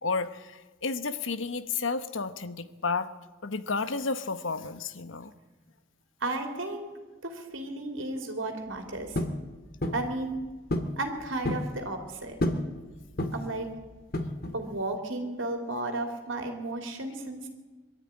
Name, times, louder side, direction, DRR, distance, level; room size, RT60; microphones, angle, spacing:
voice 1, 0.0-3.1 3.4-5.3, left 4 dB, 80° left, 12 dB, 1.2 m, -32 dB
voice 2, 6.2-6.9 7.2-9.2 9.9-10.4 11.0-12.4 13.3-13.7 14.5-17.5, right 2 dB, 80° right, 4 dB, 3.1 m, -33 dB
sound 1, 9.2-9.4 9.8-10.1 10.7-11.0 11.2-11.7 12.4-12.7 13.2-13.5 14.1-14.6, left 1 dB, 50° left, 1.9 m, -29 dB
23.0 x 13.0 x 9.8 m, 1.3 s
head